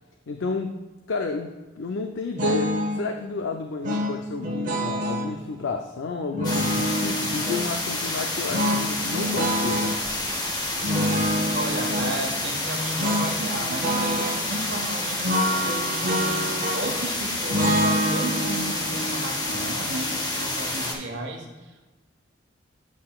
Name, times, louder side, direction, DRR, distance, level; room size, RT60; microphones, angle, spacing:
voice 1, 0.3-0.8 1.1-10.0, left 3 dB, 70° left, 4 dB, 0.5 m, -31 dB
sound 1, 2.4-3.0 3.8-5.3 6.3-7.7 8.5-10.0 10.8-12.2 13.0-13.3 13.6-14.4 15.2-17.0 17.5-20.6, equal, 40° right, 0.9 m, -26 dB
sound 2, 6.4-20.9, left 2 dB, 20° left, 0.8 m, -29 dB
voice 2, 11.5-21.9, right 1 dB, 65° right, 2 dB, 1.2 m, -34 dB
8.3 x 7.5 x 2.3 m, 1.2 s
head